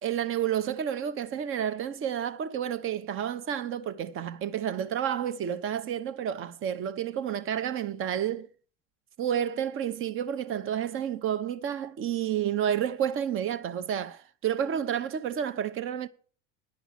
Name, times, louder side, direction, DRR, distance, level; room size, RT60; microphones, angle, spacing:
voice 1, 0.0-8.5 9.2-16.1, right 9 dB, 35° right, 0.9 m, -30 dB
10.5 x 6.1 x 8.6 m
hypercardioid pair, 85°, 38 cm